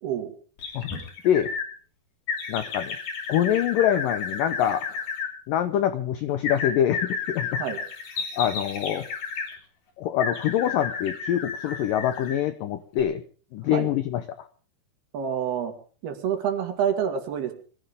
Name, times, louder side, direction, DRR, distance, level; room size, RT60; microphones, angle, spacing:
sound 1, 0.6-1.7 2.3-5.3 6.4-9.5 10.2-12.5 12.9-13.0, left 5 dB, 50° left, 4.2 m, -32 dB
voice 1, 2.5-3.0 3.3-4.9 5.5-7.6 8.3-9.1 10.0-13.2 13.5-14.2, left 10 dB, 80° left, 11 dB, 2.0 m, -25 dB
voice 2, 15.1-15.7 16.0-17.5, right 8 dB, 65° right, 6 dB, 3.8 m, -27 dB
22.5 x 15.5 x 3.7 m, 0.41 s
omnidirectional pair, 5.0 m